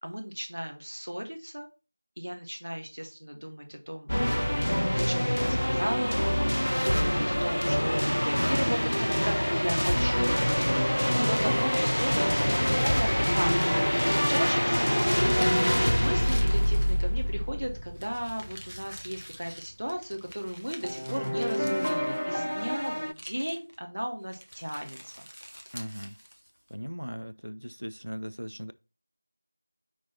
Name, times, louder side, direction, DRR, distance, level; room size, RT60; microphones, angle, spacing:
voice 1, 0.0-1.7 2.2-4.1 4.9-10.4 11.1-25.2, equal, 25° right, 0.6 m, -35 dB
sound 1, 4.1-19.1 20.8-23.1, equal, 50° left, 0.4 m, -26 dB
sound 2, 11.7-21.5, equal, 10° left, 1.0 m, -53 dB
sound 3, 15.0-17.3 18.0-22.3 22.6-23.8 24.3-26.7, equal, 40° right, 1.1 m, -46 dB
voice 2, 25.7-26.2 26.7-28.7, equal, 85° right, 0.5 m, -38 dB
5.6 x 4.6 x 4.1 m
figure-of-eight pair, 180°, 0 cm